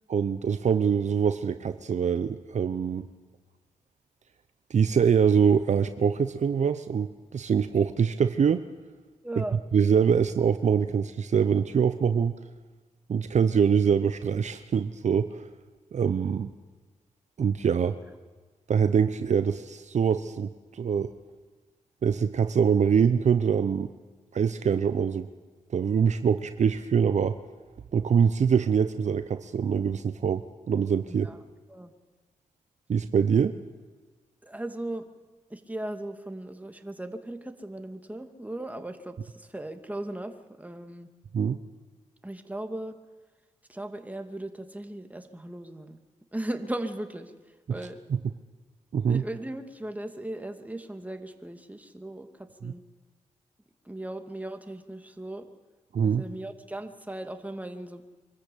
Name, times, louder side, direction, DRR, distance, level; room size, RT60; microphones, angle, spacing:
voice 1, 0.1-3.1 4.7-8.6 9.4-9.5 9.7-12.3 13.1-15.5 15.9-16.5 17.4-18.0 18.7-21.1 22.0-23.9 24.3-25.3 25.7-27.4 27.9-31.3 32.9-33.6 41.3-41.6 48.1-48.2 48.9-49.2 52.6-52.7 55.9-56.2, right 7 dB, 60° right, 10 dB, 0.8 m, -24 dB
voice 2, 9.2-9.6 31.1-31.4 31.7-31.9 33.5-33.6 34.4-35.1 35.5-41.1 42.2-43.0 43.7-46.0 46.3-47.3 47.7-48.0 49.0-52.8 53.9-55.5 56.0-58.0, right 1 dB, 10° right, 6 dB, 2.2 m, -37 dB
24.5 x 13.5 x 8.5 m, 1.3 s
supercardioid pair, 45°, 13 cm